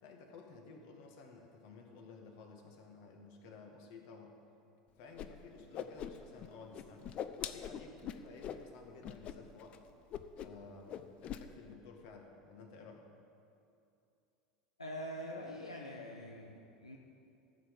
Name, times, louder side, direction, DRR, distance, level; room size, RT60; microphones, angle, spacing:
voice 1, 0.0-4.4 5.0-9.8 10.4-13.1, left 4 dB, 60° left, 2 dB, 1.9 m, -54 dB
Whoosh swoosh swish, 5.2-5.3 5.6-6.5 6.7-8.6 9.0-9.3 9.6-9.8 10.1-10.6 10.9-11.4, left 10 dB, 40° left, 0.7 m, -42 dB
voice 2, 14.8-17.0, equal, 90° left, -1 dB, 1.0 m, -44 dB
14.0 x 6.8 x 7.6 m, 2.6 s
figure-of-eight pair, 80°, 3 cm